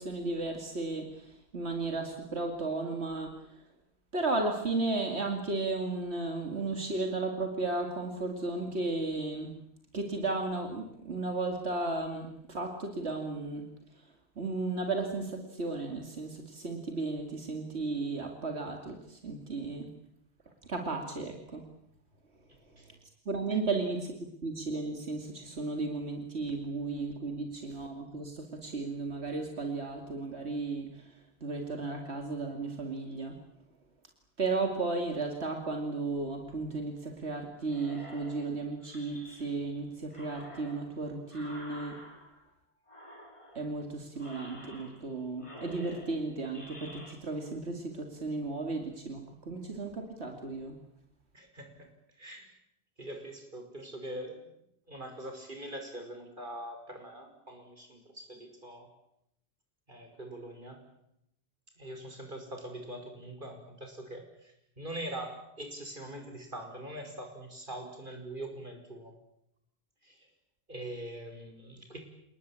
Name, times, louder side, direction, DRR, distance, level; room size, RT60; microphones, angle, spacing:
voice 1, 0.0-3.6 4.1-9.5 9.9-19.9 20.6-21.6 22.6-23.0 23.3-33.4 34.4-42.0 43.5-50.8, right 3 dB, 90° right, 3 dB, 2.7 m, -34 dB
sound 1, 37.7-39.8 40.1-42.5 42.9-43.8 44.2-45.1 45.4-47.2, equal, 30° left, 4.6 m, -49 dB
voice 2, 51.3-51.9 52.1-52.5 53.0-54.5 54.9-58.9 59.9-60.9 61.8-69.1 70.0-70.3 70.7-72.0, right 1 dB, 50° right, 4 dB, 5.8 m, -43 dB
28.5 x 19.5 x 8.8 m, 0.78 s
omnidirectional pair, 1.1 m